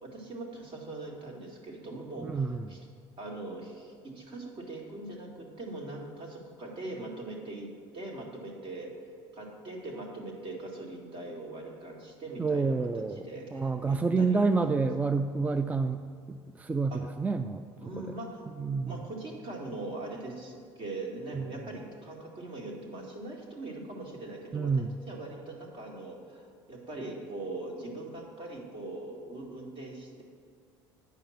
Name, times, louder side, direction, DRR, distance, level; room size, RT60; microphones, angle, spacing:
voice 1, 0.0-2.8 3.2-7.7 7.9-14.4 16.9-17.0 17.8-18.5 18.8-24.7 25.1-30.2, right 2 dB, 50° right, -1 dB, 2.1 m, -41 dB
voice 2, 2.2-2.8 12.4-13.2 13.5-16.0 16.3-17.6 18.0-18.1 18.6-19.0 21.3-21.5 24.5-24.9, right 4 dB, 15° right, 8 dB, 0.3 m, -28 dB
9.2 x 5.1 x 5.8 m, 2.3 s
supercardioid pair, 90°, 11 cm